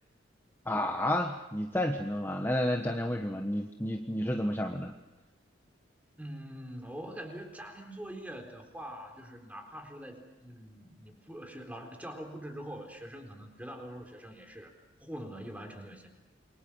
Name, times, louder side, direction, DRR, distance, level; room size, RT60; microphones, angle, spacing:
voice 1, 0.7-4.9, left 1 dB, 10° left, 3 dB, 1.3 m, -31 dB
voice 2, 6.2-14.7 15.0-16.1, equal, 10° right, 3 dB, 4.1 m, -44 dB
28.5 x 24.0 x 6.4 m, 1.1 s
head